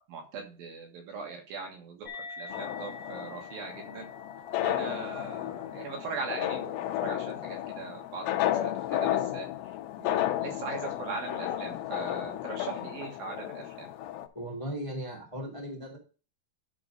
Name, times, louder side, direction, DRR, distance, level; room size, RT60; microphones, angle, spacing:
voice 1, 0.1-2.1 2.4-4.1 4.6-9.4 10.0-13.9, right 4 dB, 65° right, 2 dB, 3.0 m, -40 dB
sound 1, 2.0-8.9, left 3 dB, 30° left, 0.5 m, -48 dB
sound 2, 2.5-14.3, left 13 dB, 80° left, 2.3 m, -33 dB
voice 2, 14.3-16.0, right 1 dB, 10° left, -3 dB, 1.5 m, -37 dB
11.0 x 3.9 x 5.3 m, 0.35 s
omnidirectional pair, 4.7 m